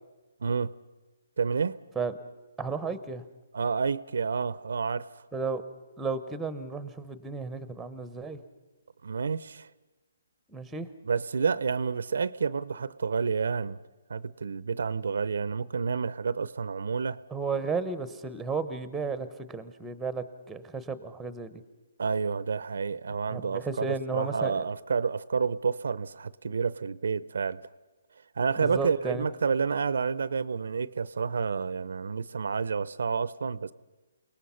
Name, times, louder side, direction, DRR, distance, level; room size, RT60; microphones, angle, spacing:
voice 1, 0.4-0.7 1.4-1.8 3.5-5.1 9.0-9.7 11.0-13.8 14.1-17.2 22.0-27.6 28.4-33.7, right 5 dB, 75° right, 18 dB, 0.6 m, -29 dB
voice 2, 2.6-3.2 5.3-5.6 6.0-8.4 10.5-10.9 17.3-21.6 23.3-24.6 28.6-29.2, right 4 dB, 5° right, 13 dB, 0.9 m, -33 dB
28.5 x 19.0 x 5.7 m, 1.1 s
hypercardioid pair, 160°, 0 cm